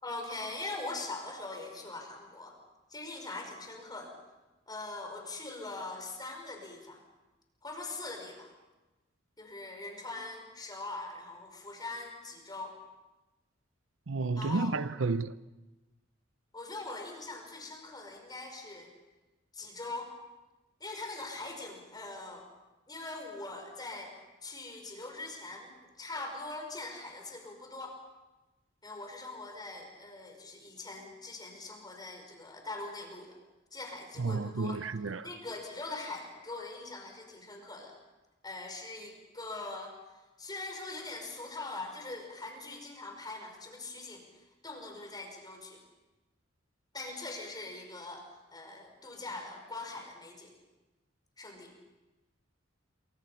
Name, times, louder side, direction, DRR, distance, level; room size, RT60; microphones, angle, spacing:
voice 1, 0.0-2.6 2.9-4.1 4.7-7.0 7.6-8.5 9.4-12.8 14.4-14.7 16.5-18.9 19.5-20.1 20.8-22.5 22.9-24.1 24.4-28.0 28.8-33.4 33.7-34.8 35.2-37.9 38.4-39.9 40.4-44.2 44.6-45.8 46.9-48.3 48.5-50.5 51.4-51.7, left 2 dB, 20° left, 5.3 m, -42 dB
voice 2, 14.1-15.3 34.2-35.3, right 3 dB, 75° right, 0.7 m, -31 dB
27.5 x 25.0 x 5.7 m
head